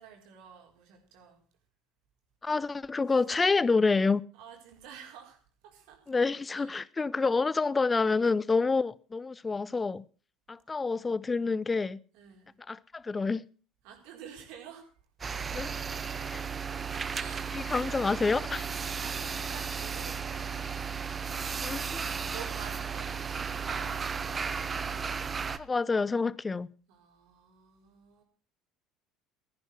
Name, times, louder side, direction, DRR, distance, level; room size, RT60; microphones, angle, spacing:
voice 1, 0.0-1.4 4.3-6.1 6.5-6.8 12.1-12.5 13.8-15.1 16.2-16.4 17.0-17.6 19.0-20.9 22.3-24.9 26.9-28.2, right 8 dB, 65° right, 4.1 m, -50 dB
voice 2, 2.4-4.2 6.1-10.0 10.5-12.0 12.7-13.4 15.5-15.7 17.5-18.7 21.6-22.0 25.6-26.7, left 4 dB, 20° left, 0.7 m, -28 dB
sound 1, 15.2-25.6, right 6 dB, 30° right, 1.0 m, -34 dB
15.0 x 10.5 x 6.0 m
figure-of-eight pair, 65°, 0 cm